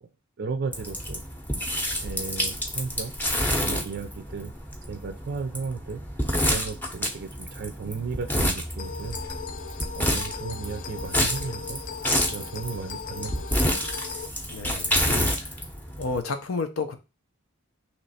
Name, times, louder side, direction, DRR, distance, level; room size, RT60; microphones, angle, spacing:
voice 1, 0.4-1.2 2.0-3.2 3.5-4.5 4.9-6.0 6.5-9.2 10.0-11.8 12.2-13.7, right 5 dB, 50° right, 8 dB, 0.4 m, -35 dB
sound 1, 0.7-16.2, equal, 10° left, 0.7 m, -29 dB
sound 2, 8.8-14.3, left 6 dB, 35° left, 0.3 m, -38 dB
voice 2, 14.5-15.6 16.0-17.0, left 4 dB, 80° left, 8 dB, 0.7 m, -31 dB
3.1 x 3.0 x 4.1 m, 0.29 s
head